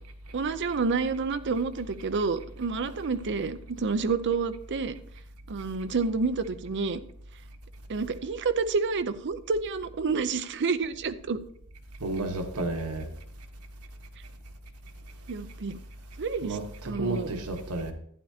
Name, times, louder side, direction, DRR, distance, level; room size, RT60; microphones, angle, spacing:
voice 1, 0.3-5.0 5.5-7.0 7.9-11.4 15.3-15.8 16.2-16.6 16.8-17.3, right 4 dB, 55° right, 0.6 m, -29 dB
voice 2, 12.0-13.1 16.4-17.9, right 2 dB, 85° right, 1.3 m, -32 dB
12.0 x 9.8 x 2.8 m
head